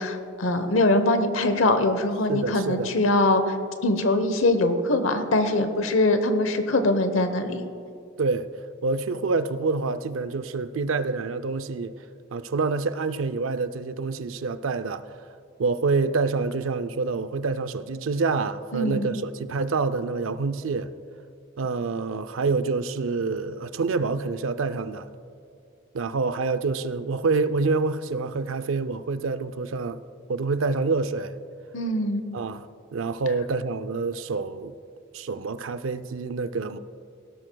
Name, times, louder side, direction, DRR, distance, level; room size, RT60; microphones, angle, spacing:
voice 1, 0.0-3.5 3.8-7.6 18.7-19.1 31.7-32.2, left 2 dB, 90° left, 1.0 m, -22 dB
voice 2, 2.3-3.0 8.2-8.5 8.8-12.0 12.3-15.0 15.6-20.9 21.6-25.1 25.9-30.0 30.3-31.4 32.3-32.7 32.9-34.7 35.1-36.8, right 4 dB, 85° right, 0.5 m, -27 dB
17.0 x 12.0 x 2.3 m
head